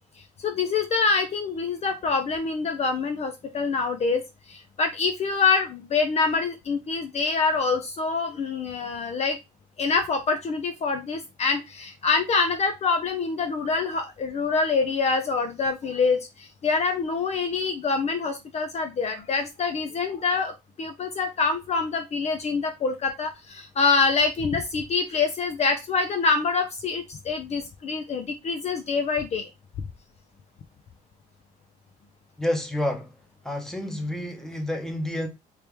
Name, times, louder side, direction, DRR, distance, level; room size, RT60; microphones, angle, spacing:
voice 1, 0.4-9.4 9.8-29.5, left 4 dB, 40° left, 0.6 m, -25 dB
voice 2, 32.4-33.1 33.4-35.3, left 1 dB, 5° left, 0.9 m, -29 dB
3.3 x 2.9 x 3.4 m
cardioid pair, 110°, 17 cm